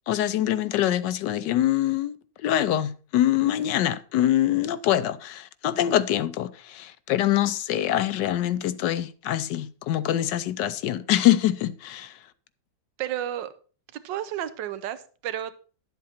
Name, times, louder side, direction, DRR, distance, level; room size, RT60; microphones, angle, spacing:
voice 1, 0.1-2.2 2.4-12.2, left 12 dB, 75° left, 1.2 m, -24 dB
voice 2, 13.0-13.5 13.9-15.5, right 11 dB, 80° right, 1.5 m, -32 dB
11.5 x 7.6 x 4.3 m
omnidirectional pair, 2.0 m